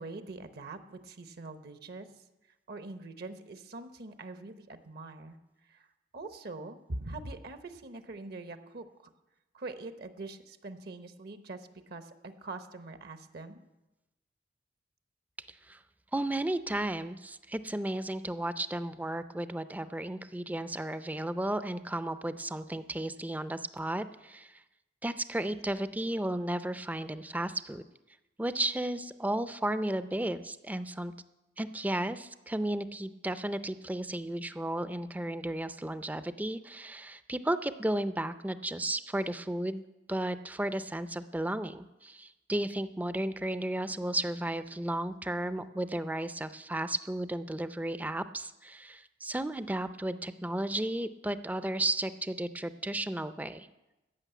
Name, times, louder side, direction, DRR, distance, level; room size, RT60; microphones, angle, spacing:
voice 1, 0.0-2.1 2.7-5.4 5.7-5.8 6.1-8.8 9.5-13.6, right 2 dB, 55° right, 9 dB, 0.8 m, -43 dB
voice 2, 15.5-15.8 16.1-24.5 25.0-27.8 28.4-31.1 31.6-39.8 40.1-53.7, right 1 dB, 10° right, 12 dB, 0.4 m, -34 dB
14.0 x 6.3 x 9.1 m, 1.0 s
head